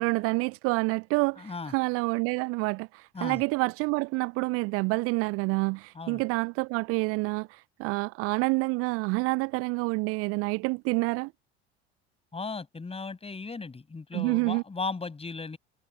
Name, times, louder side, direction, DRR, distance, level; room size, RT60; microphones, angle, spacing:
voice 1, 0.0-11.3 14.1-14.6, right 28 dB, 45° right, 0.5 m, -28 dB
voice 2, 1.4-1.7 3.1-3.4 5.9-6.2 12.3-15.6, left 4 dB, 15° left, 6.4 m, -36 dB
figure-of-eight pair, 65°, 34 cm